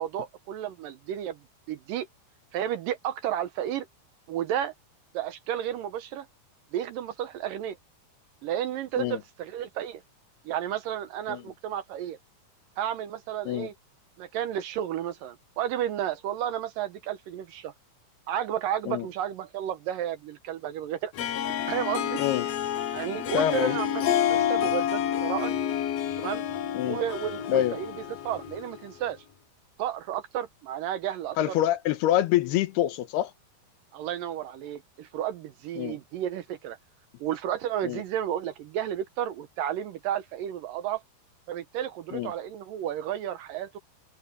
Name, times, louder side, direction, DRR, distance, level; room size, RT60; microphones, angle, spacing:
voice 1, 0.0-1.4 1.7-2.1 2.5-3.9 4.3-4.7 5.1-6.3 6.7-7.8 8.4-10.0 10.5-12.2 12.8-13.7 14.2-17.7 18.3-21.1 21.7-22.2 22.9-24.0 24.3-25.6 26.2-26.4 26.8-27.9 28.2-29.2 29.8-31.4 33.9-36.8 37.2-41.0 41.5-43.8, right 10 dB, 75° right, 2.3 m, -32 dB
Harp, 21.1-28.9, left 10 dB, 60° left, 1.8 m, -29 dB
voice 2, 23.3-23.8 26.7-27.0 27.5-27.8 31.4-33.3 35.8-36.0 37.8-38.0 42.1-42.3, left 12 dB, 85° left, 3.1 m, -26 dB
omnidirectional pair, 4.6 m